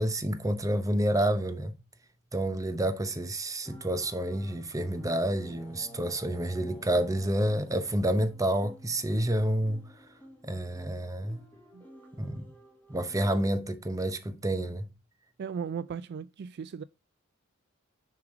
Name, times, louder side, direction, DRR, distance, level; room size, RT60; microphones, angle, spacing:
voice 1, 0.0-1.7 2.3-9.8 10.4-11.4 12.2-12.5 12.9-14.9, right 1 dB, 15° right, 0.8 m, -29 dB
sound 1, 3.6-13.5, equal, 10° left, 1.9 m, -52 dB
voice 2, 15.4-16.8, right 6 dB, 50° right, 0.3 m, -36 dB
7.1 x 4.7 x 4.8 m
head